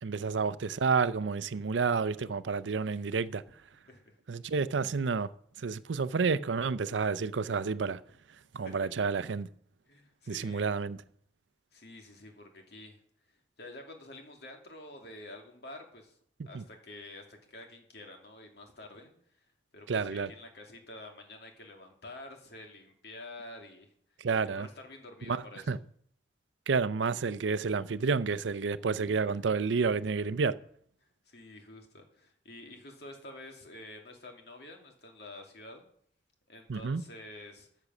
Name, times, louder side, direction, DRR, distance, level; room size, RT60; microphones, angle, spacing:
voice 1, 0.0-3.4 4.3-5.3 5.6-8.0 8.5-9.5 10.3-11.0 16.4-16.6 19.9-20.3 24.2-24.7 25.3-25.8 26.7-30.6 36.7-37.0, right 5 dB, 85° right, 0.5 m, -30 dB
voice 2, 9.9-10.7 11.7-13.0 13.3-16.2 16.5-19.4 19.7-23.9 24.4-25.8 29.0-29.4 31.3-35.8 36.5-37.7, left 2 dB, 60° left, 2.4 m, -49 dB
13.5 x 6.8 x 6.1 m
head